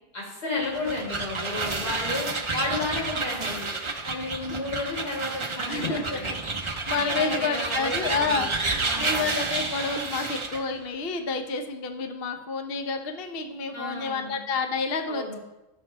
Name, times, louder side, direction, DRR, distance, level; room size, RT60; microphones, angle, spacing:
voice 1, 0.1-2.3 2.5-3.7 4.0-6.2 6.9-8.5 8.8-9.3 13.7-14.4 15.1-15.4, left 2 dB, 80° left, -4 dB, 4.7 m, -32 dB
sound 1, 0.6-10.7, right 3 dB, 40° right, 0.4 m, -30 dB
voice 2, 5.7-6.4 6.6-8.5 9.0-15.4, left 4 dB, 45° left, 5 dB, 0.9 m, -29 dB
16.0 x 6.5 x 3.4 m, 1.0 s
omnidirectional pair, 1.7 m